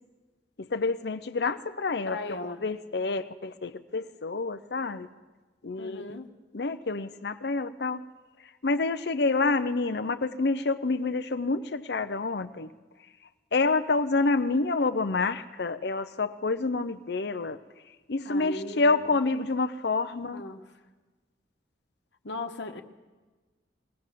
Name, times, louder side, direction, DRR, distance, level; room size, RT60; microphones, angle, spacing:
voice 1, 0.6-5.1 5.6-6.0 6.5-8.0 8.4-12.7 13.5-17.6 18.1-20.4, left 3 dB, 65° left, 8 dB, 0.7 m, -28 dB
voice 2, 2.1-2.7 5.8-6.3 18.2-19.1 20.2-20.6 22.2-22.8, left 2 dB, 90° left, 5 dB, 1.3 m, -37 dB
21.0 x 18.5 x 7.5 m, 1.3 s
head